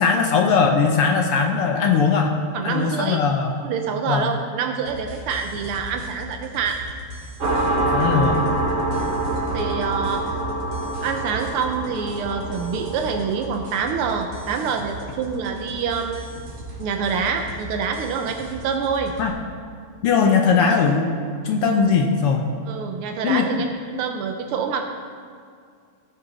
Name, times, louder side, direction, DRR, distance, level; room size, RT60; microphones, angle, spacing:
voice 1, 0.0-2.4 2.6-3.6 4.1-4.3 7.8-8.4 19.2-19.3 20.0-21.1 21.4-22.4 23.2-23.5, left 5 dB, 70° left, 2 dB, 1.4 m, -19 dB
voice 2, 2.5-3.2 3.6-6.8 9.5-10.4 11.0-16.3 16.8-19.1 22.7-24.8, right 6 dB, 85° right, 4 dB, 1.2 m, -26 dB
sound 1, 4.9-19.3, equal, 45° right, 2.3 m, -38 dB
sound 2, 7.4-16.7, right 2 dB, 65° right, 0.7 m, -27 dB
17.0 x 7.1 x 4.0 m, 2.2 s
omnidirectional pair, 3.3 m